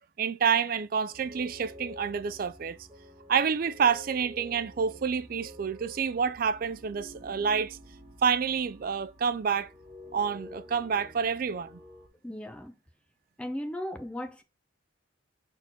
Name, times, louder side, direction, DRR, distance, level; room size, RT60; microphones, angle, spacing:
voice 1, 0.2-2.8 3.3-7.8 8.2-9.7 10.1-11.7, right 6 dB, 45° right, 0.4 m, -28 dB
sound 1, 1.1-12.1, equal, 25° right, 2.2 m, -49 dB
voice 2, 12.2-12.7 13.4-14.4, left 1 dB, 5° left, 0.7 m, -36 dB
5.9 x 4.5 x 4.0 m
head